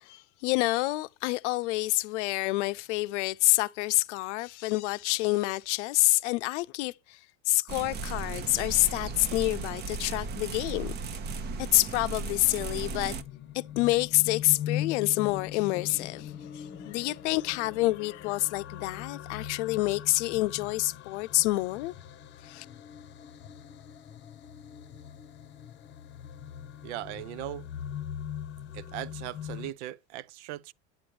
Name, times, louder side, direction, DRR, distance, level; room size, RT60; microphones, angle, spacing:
voice 1, 0.1-7.2 7.5-10.9 11.7-13.1 13.5-21.9 22.4-22.7, left 20 dB, 70° left, 0.6 m, -28 dB
sound 1, 7.7-13.2, right 4 dB, 25° right, 0.7 m, -36 dB
sound 2, 11.9-29.7, left 10 dB, 30° left, 0.9 m, -41 dB
voice 2, 26.8-27.7 28.7-30.7, right 14 dB, 70° right, 0.6 m, -39 dB
8.8 x 8.7 x 3.2 m
supercardioid pair, 140°, 36 cm